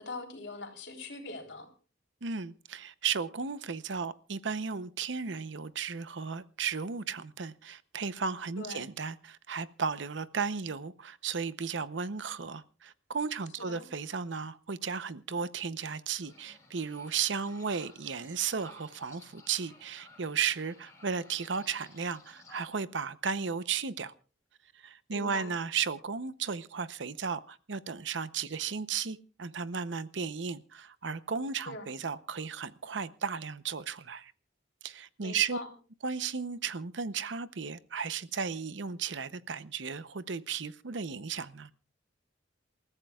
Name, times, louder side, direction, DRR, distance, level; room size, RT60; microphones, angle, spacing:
voice 1, 0.0-1.7 8.6-8.9 13.6-13.9 25.1-25.5 31.7-31.9 35.2-35.7, left 2 dB, 65° left, 3.5 m, -42 dB
voice 2, 2.2-24.1 24.8-34.3 34.8-35.6 36.0-41.7, right 6 dB, 70° right, 0.7 m, -35 dB
sound 1, 16.2-22.6, left 3 dB, 15° left, 5.4 m, -56 dB
28.0 x 14.5 x 2.4 m
head